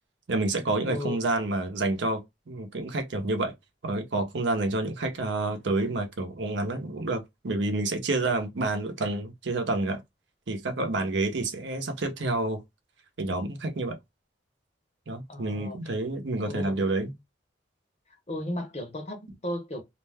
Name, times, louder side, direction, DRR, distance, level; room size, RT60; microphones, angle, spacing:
voice 1, 0.3-3.5 3.8-10.0 10.5-12.6 13.2-14.0 15.1-17.1, right 2 dB, 80° right, 0.7 m, -29 dB
voice 2, 0.8-1.2 15.3-15.8 16.4-16.8 18.3-19.8, left 1 dB, 40° left, 0.8 m, -35 dB
2.5 x 2.1 x 3.3 m
head